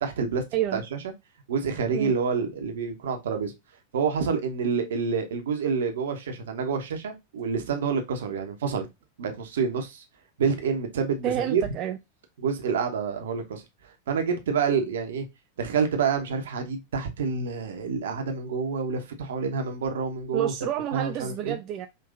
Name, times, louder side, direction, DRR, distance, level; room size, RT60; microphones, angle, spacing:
voice 1, 0.0-0.4 0.7-1.0 1.5-3.5 3.9-8.9 9.2-10.0 10.4-11.6 12.4-13.6 14.1-15.2 15.6-20.5 20.9-21.6, right 5 dB, 60° right, 1.0 m, -28 dB
voice 2, 0.5-0.8 1.9-2.1 11.2-12.0 20.3-21.9, right 12 dB, 35° right, 0.4 m, -29 dB
5.4 x 3.1 x 2.4 m
figure-of-eight pair, 90°, 0 cm